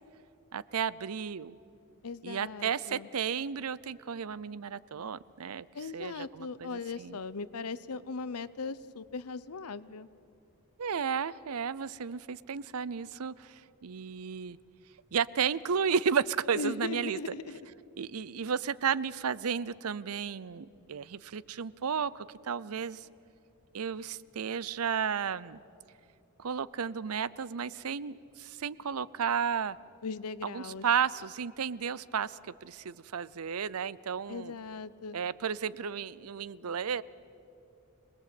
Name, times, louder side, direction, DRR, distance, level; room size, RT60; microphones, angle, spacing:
voice 1, 0.5-1.5 2.2-5.7 5.9-7.2 10.8-14.6 15.1-17.2 18.0-23.1 23.7-25.6 26.4-29.8 30.4-34.5 35.1-37.0, right 7 dB, 80° right, 20 dB, 0.6 m, -33 dB
voice 2, 2.0-3.1 5.7-10.1 16.6-17.6 30.0-30.8 34.3-35.2, left 4 dB, 90° left, 17 dB, 0.8 m, -39 dB
26.0 x 20.0 x 8.4 m, 2.7 s
head